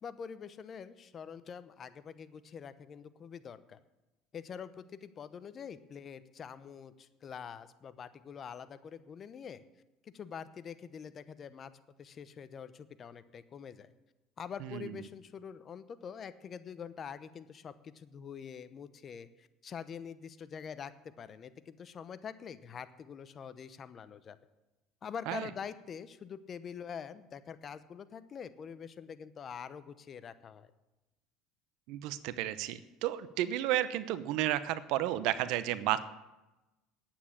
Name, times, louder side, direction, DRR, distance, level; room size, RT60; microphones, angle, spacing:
voice 1, 0.0-3.8 4.3-9.6 10.0-11.7 12.0-13.9 14.4-24.4 25.0-30.7, left 7 dB, 35° left, 13 dB, 0.8 m, -45 dB
voice 2, 14.6-14.9 25.3-25.5 31.9-36.0, right 13 dB, 70° right, 14 dB, 0.8 m, -32 dB
9.7 x 8.8 x 8.6 m, 1.0 s
supercardioid pair, 105°, 0 cm